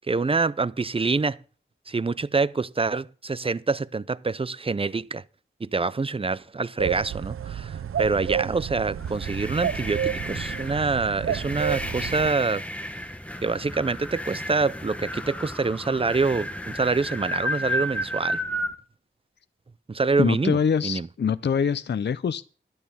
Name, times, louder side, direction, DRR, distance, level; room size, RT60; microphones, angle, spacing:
voice 1, 0.1-1.4 1.9-5.2 5.6-12.6 13.4-18.4 19.9-21.1, right 4 dB, 25° right, 0.5 m, -26 dB
sound 1, 6.8-12.3, right 9 dB, 90° right, 0.4 m, -30 dB
sound 2, 9.0-18.7, equal, 5° left, 1.3 m, -33 dB
voice 2, 20.2-22.4, left 6 dB, 55° left, 0.5 m, -24 dB
12.0 x 9.6 x 5.4 m
wide cardioid pair, 85°, 21 cm